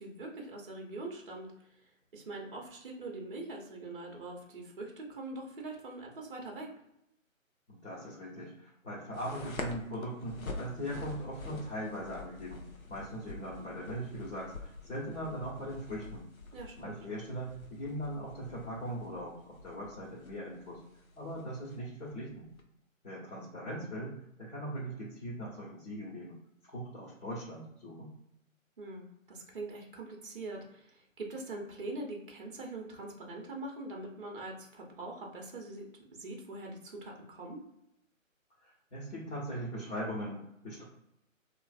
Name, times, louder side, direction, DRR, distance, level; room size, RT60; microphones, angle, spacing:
voice 1, 0.0-1.9 2.1-6.7 16.5-17.0 28.8-35.9 36.1-37.6, right 2 dB, 40° right, 1 dB, 0.7 m, -43 dB
voice 2, 7.7-12.6 12.9-16.2 16.8-20.8 21.2-22.5 23.0-26.4 26.6-28.1 38.6-40.8, equal, 55° left, -7 dB, 1.2 m, -40 dB
sound 1, 9.1-22.6, left 3 dB, 85° left, 0.7 m, -47 dB
3.1 x 2.5 x 2.3 m, 0.81 s
figure-of-eight pair, 140°, 41 cm